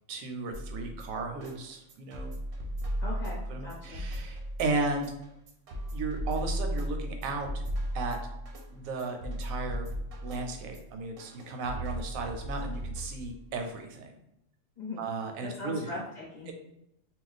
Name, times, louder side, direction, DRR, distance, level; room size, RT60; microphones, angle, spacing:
voice 1, 0.1-2.3 3.5-5.1 5.9-7.6 7.9-8.2 8.7-9.9 10.2-14.1 15.0-15.9 16.5-16.6, right 3 dB, 85° right, 4 dB, 1.0 m, -35 dB
sound 1, 0.5-13.5, equal, 55° right, 0.7 m, -36 dB
voice 2, 3.0-4.0 14.8-15.0 15.4-16.5, left 2 dB, 45° left, -4 dB, 0.7 m, -39 dB
2.4 x 2.1 x 3.9 m, 0.81 s
omnidirectional pair, 1.4 m